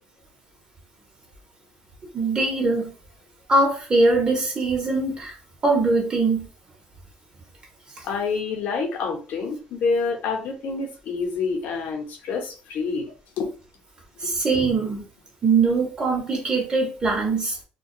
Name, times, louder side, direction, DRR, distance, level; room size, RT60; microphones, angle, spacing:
voice 1, 2.1-2.9 3.5-5.3 5.6-6.5 14.2-15.0 15.4-17.6, right 3 dB, 30° right, 0 dB, 0.8 m, -22 dB
voice 2, 8.0-13.1 13.4-13.5 14.2-14.3, left 4 dB, 65° left, 1 dB, 0.8 m, -27 dB
2.3 x 2.2 x 2.6 m, 0.35 s
cardioid pair, 130°, 3 cm